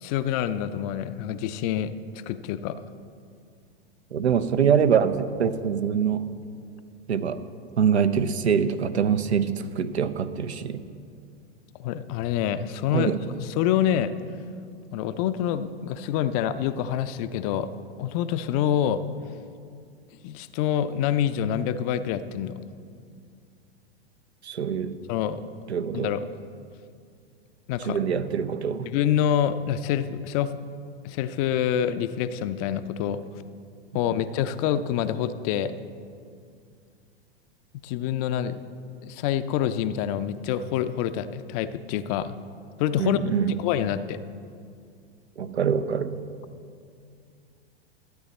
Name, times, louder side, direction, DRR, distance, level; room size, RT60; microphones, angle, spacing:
voice 1, 0.0-1.9 2.3-2.8 11.8-13.2 13.6-14.1 14.9-17.7 18.0-19.0 20.2-22.6 25.1-25.4 25.9-26.3 27.7-28.0 28.9-30.5 31.0-33.2 33.9-35.7 37.8-38.6 39.0-42.3 42.8-43.2 43.5-44.2, left 10 dB, 35° left, 12 dB, 0.4 m, -26 dB
voice 2, 4.1-6.2 7.1-7.4 7.8-10.8 12.9-13.2 24.4-25.0 25.7-26.2 27.8-28.9 43.0-43.5 45.4-46.2, right 7 dB, 90° right, 11 dB, 0.6 m, -24 dB
13.0 x 8.4 x 4.1 m, 2.3 s
hypercardioid pair, 105°, 32 cm